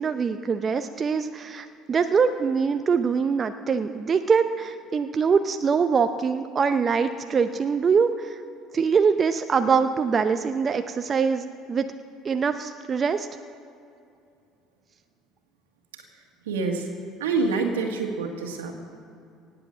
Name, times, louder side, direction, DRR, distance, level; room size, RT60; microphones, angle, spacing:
voice 1, 0.0-8.4 8.7-11.9 12.2-13.3, right 6 dB, 35° right, 8 dB, 0.6 m, -23 dB
voice 2, 16.5-16.9 17.2-18.7, right 4 dB, 80° right, 3 dB, 1.9 m, -26 dB
18.0 x 7.8 x 7.6 m, 2.5 s
hypercardioid pair, 65°, 0 cm